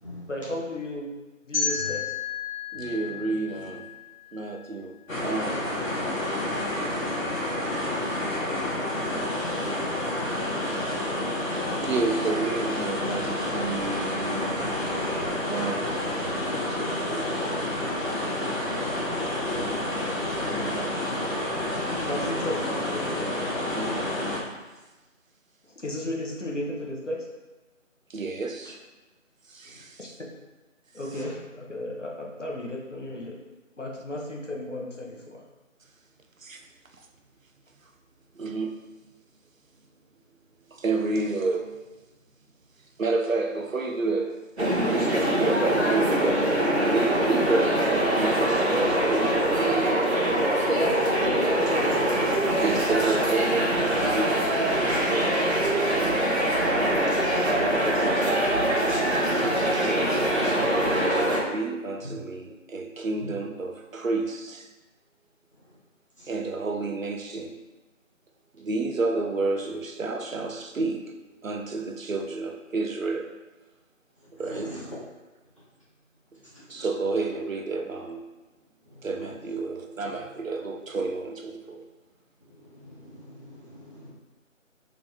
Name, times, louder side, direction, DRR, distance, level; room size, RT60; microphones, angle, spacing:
voice 1, 0.3-1.1 1.4-2.1 22.0-23.3 25.8-27.2 30.0-30.3 30.9-33.4 33.8-35.4 50.7-52.2, left 1 dB, 65° left, -1 dB, 1.1 m, -33 dB
sound 1, 1.5-4.5, left 6 dB, 20° right, 1.5 m, -32 dB
voice 2, 2.7-3.9 4.3-5.6 11.8-17.6 20.4-21.0 23.8-24.1 28.1-28.8 29.5-30.0 36.4-36.6 38.4-38.7 40.7-41.7 43.0-44.4 45.2-50.2 52.6-56.2 57.1-60.2 60.8-64.7 66.3-67.6 68.5-71.0 71.4-73.3 74.4-74.7 76.7-78.2 79.0-81.8, right 3 dB, 80° right, 4 dB, 0.7 m, -31 dB
sound 2, 5.1-24.4, left 1 dB, 85° left, 1.3 m, -29 dB
sound 3, 44.6-61.4, right 1 dB, 55° right, 1.2 m, -23 dB
voice 3, 74.4-74.8 82.7-84.1, left 1 dB, 25° left, -9 dB, 1.1 m, -43 dB
3.9 x 3.5 x 3.3 m, 1.1 s
figure-of-eight pair, 170°, 39 cm